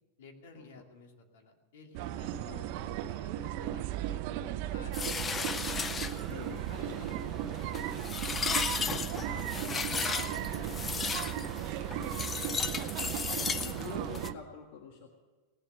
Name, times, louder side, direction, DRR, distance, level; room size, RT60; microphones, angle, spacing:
voice 1, 0.2-6.3 6.7-11.2, left 4 dB, 75° left, 3 dB, 2.5 m, -53 dB
sound 1, 1.9-14.3, right 12 dB, 45° right, 0.7 m, -36 dB
sound 2, 4.9-14.3, left 5 dB, 15° left, 0.5 m, -36 dB
voice 2, 6.3-6.7 11.9-12.8 13.2-15.1, left 6 dB, 55° left, 3 dB, 1.6 m, -47 dB
18.0 x 7.9 x 9.4 m, 1.4 s
supercardioid pair, 160°, 0 cm